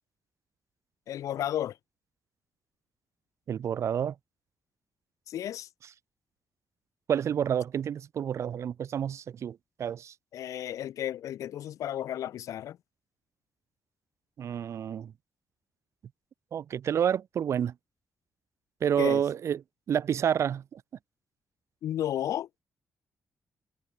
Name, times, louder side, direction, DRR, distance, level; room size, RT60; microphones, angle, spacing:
voice 1, 1.1-1.8 5.3-5.7 10.3-12.8 19.0-19.2 21.8-22.5, left 11 dB, 85° left, 1.5 m, -33 dB
voice 2, 3.5-4.1 7.1-10.1 14.4-15.1 16.5-17.7 18.8-19.6 19.9-20.8, right 8 dB, 60° right, 1.4 m, -29 dB
cardioid pair, 120°, 5 cm